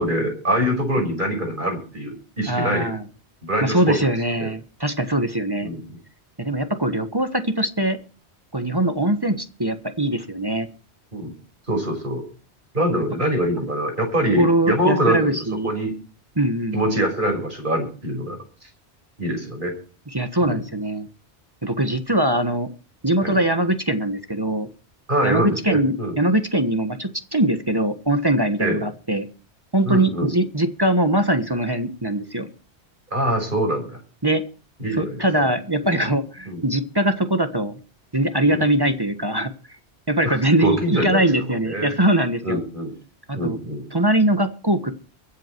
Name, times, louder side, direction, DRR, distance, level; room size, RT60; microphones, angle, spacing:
voice 1, 0.0-2.9 3.4-4.0 4.4-4.5 5.6-5.8 11.1-11.3 11.7-12.2 12.7-15.9 16.7-18.4 19.2-19.7 20.4-20.6 23.2-23.4 25.1-26.2 28.6-28.9 29.8-30.3 33.1-34.0 34.8-35.2 35.8-36.1 36.5-36.6 38.5-38.6 40.2-41.9 42.4-42.9 43.3-43.8, right 1 dB, 45° right, 3 dB, 6.2 m, -24 dB
voice 2, 2.5-3.0 3.6-5.7 6.4-8.0 8.5-10.7 14.4-15.7 16.4-17.0 20.1-21.1 21.6-22.7 23.0-24.7 25.2-29.3 29.7-32.5 34.2-34.4 35.0-37.8 38.1-39.5 40.1-42.6 43.3-43.6 43.9-44.9, right 1 dB, 20° right, 9 dB, 1.4 m, -22 dB
23.0 x 8.3 x 4.6 m, 0.38 s
omnidirectional pair, 1.2 m